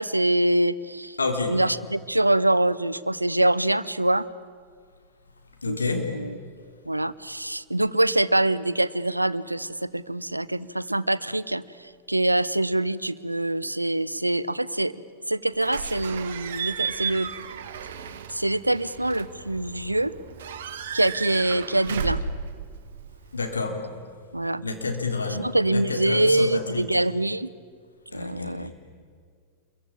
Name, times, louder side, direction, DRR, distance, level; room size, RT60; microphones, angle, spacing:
voice 1, 0.0-1.2 1.5-4.3 5.7-6.4 6.9-11.6 12.1-14.9 15.3-17.3 18.3-20.1 20.9-22.2 24.3-24.6 25.3-27.5 28.1-28.7, right 1 dB, 85° right, 18 dB, 0.7 m, -24 dB
voice 2, 1.2-1.5 5.6-6.1 23.3-23.8 24.6-25.8 26.1-26.6 28.1-28.5, left 3 dB, 75° left, 4 dB, 3.3 m, -28 dB
Slam / Squeak / Alarm, 15.6-23.6, right 6 dB, 60° right, 1.7 m, -34 dB
28.5 x 22.5 x 8.7 m, 2.1 s
figure-of-eight pair, 90°, 0 cm